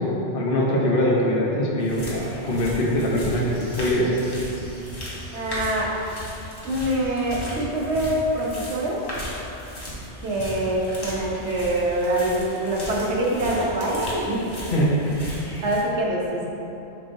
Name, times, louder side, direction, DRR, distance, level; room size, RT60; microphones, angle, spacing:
voice 1, 0.0-4.1 14.7-14.9, left 1 dB, 55° left, -3 dB, 1.1 m, -23 dB
sound 1, 1.8-15.8, equal, 20° left, 1.3 m, -36 dB
voice 2, 5.3-5.9 6.6-9.0 10.2-14.4 14.7-14.9 15.6-16.5, right 1 dB, 80° right, -3 dB, 1.3 m, -25 dB
5.8 x 4.7 x 3.8 m, 3.0 s
omnidirectional pair, 1.1 m